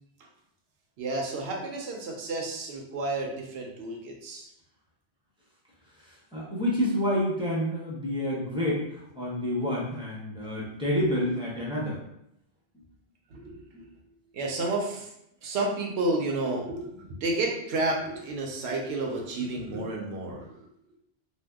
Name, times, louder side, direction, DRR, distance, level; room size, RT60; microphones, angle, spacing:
voice 1, 1.0-4.5 11.0-11.1 13.3-13.9 14.3-15.1 15.4-20.7, right 2 dB, 80° right, 0 dB, 0.9 m, -31 dB
voice 2, 6.0-12.0, equal, 5° right, -6 dB, 0.8 m, -29 dB
2.7 x 2.2 x 3.4 m, 0.77 s
omnidirectional pair, 1.1 m